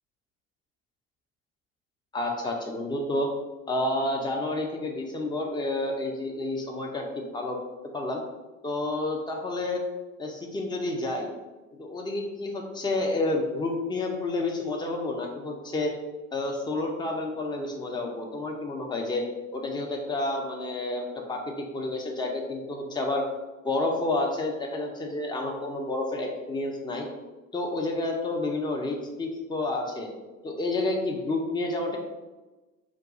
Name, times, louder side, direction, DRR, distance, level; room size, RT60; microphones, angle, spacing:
voice 1, 2.1-3.3 3.7-7.6 7.9-8.2 8.6-9.8 10.2-11.3 11.8-15.9 16.3-19.2 19.5-23.2 23.6-27.1 27.5-30.1 30.4-32.0, left 2 dB, 10° left, 1 dB, 0.3 m, -30 dB
2.3 x 2.2 x 3.8 m, 1.2 s
figure-of-eight pair, 60°, 40 cm